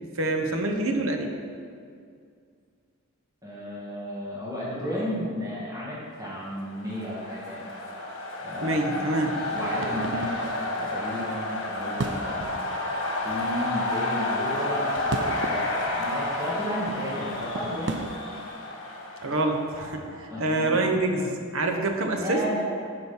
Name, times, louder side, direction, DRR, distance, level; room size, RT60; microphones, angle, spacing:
voice 1, 0.1-1.3 8.6-9.4 19.2-22.4, right 2 dB, 75° right, 4 dB, 1.0 m, -26 dB
voice 2, 3.4-7.7 8.4-12.6 13.2-18.0 20.3-20.8 22.2-22.8, equal, 15° right, -8 dB, 1.9 m, -33 dB
sound 1, 6.5-20.3, left 2 dB, 60° left, 1.5 m, -31 dB
sound 2, 9.4-18.2, right 3 dB, 55° right, 0.4 m, -39 dB
10.5 x 5.1 x 5.5 m, 2.2 s
head